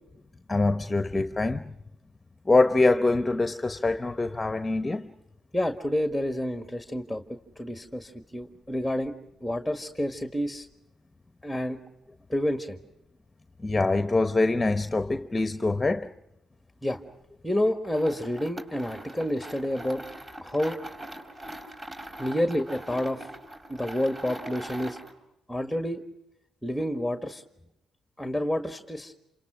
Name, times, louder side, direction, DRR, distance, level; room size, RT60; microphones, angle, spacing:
voice 1, 0.5-1.7 2.5-5.1 13.6-16.1, left 2 dB, 20° left, 1.0 m, -24 dB
voice 2, 5.5-9.1 9.4-10.7 11.4-11.8 12.3-12.8 16.8-17.0 17.4-20.0 20.4-20.8 22.2-23.3 23.7-25.0 25.5-26.0 26.6-27.4 28.2-29.1, left 1 dB, ahead, 1.7 m, -29 dB
sound 1, 17.8-25.2, right 1 dB, 25° right, 4.1 m, -42 dB
28.0 x 26.5 x 6.2 m
cardioid pair, 90°, 0 cm